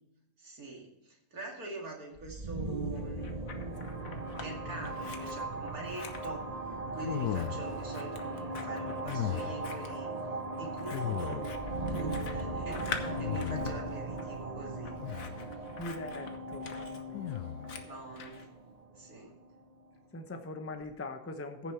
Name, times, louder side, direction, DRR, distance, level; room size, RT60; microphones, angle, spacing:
voice 1, 0.4-3.4 4.3-6.5 6.9-10.1 10.5-11.4 11.9-14.9 17.8-18.5 19.0-19.3, right 2 dB, 60° right, 0 dB, 2.9 m, -44 dB
sound 1, 2.2-19.8, right 2 dB, 30° right, 0.7 m, -38 dB
Scissors, 2.9-4.5 4.8-18.5, left 5 dB, 55° left, 1.4 m, -46 dB
sound 2, 7.0-7.9 9.0-9.8 10.9-11.7 12.9-13.9 15.0-15.5 17.1-17.8, left 12 dB, 75° left, 1.0 m, -37 dB
voice 2, 15.8-17.5 20.1-21.7, left 2 dB, 10° left, 6 dB, 0.7 m, -42 dB
15.0 x 7.1 x 4.5 m, 0.90 s
omnidirectional pair, 1.8 m